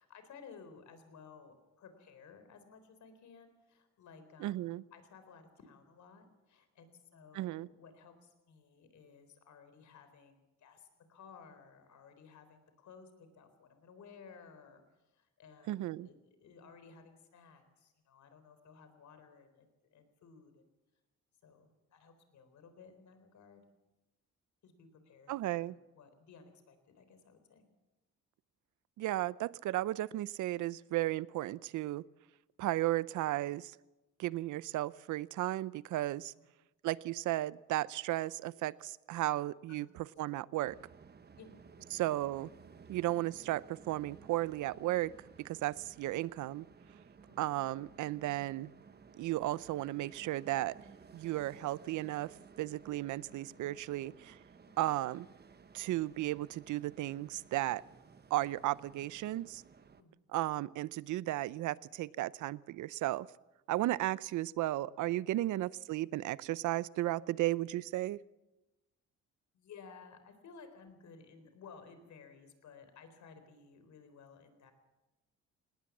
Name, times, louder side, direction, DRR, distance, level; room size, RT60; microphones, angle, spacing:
voice 1, 0.0-20.6 21.4-23.6 24.6-27.6 36.4-36.5 39.7-39.9 41.4-41.5 41.8-41.9 45.6-45.7 47.3-47.4 53.5-53.7 54.7-55.0 60.0-60.1 63.7-63.9 65.4-65.5 69.5-74.7, left 5 dB, 70° left, 9 dB, 4.0 m, -57 dB
voice 2, 4.4-4.8 7.3-7.7 15.7-16.1 25.3-25.7 29.0-32.0 32.6-33.7 34.2-36.3 36.8-39.9 40.2-40.8 41.9-42.5 42.9-45.1 45.4-46.7 47.4-48.7 49.2-50.8 51.1-54.4 54.8-55.3 55.7-57.8 58.3-59.6 60.3-63.3 63.7-68.2, right 16 dB, 80° right, 20 dB, 0.6 m, -34 dB
sound 1, 40.6-60.0, right 5 dB, 35° right, 1.2 m, -58 dB
19.0 x 19.0 x 7.3 m, 1.1 s
cardioid pair, 90°, 30 cm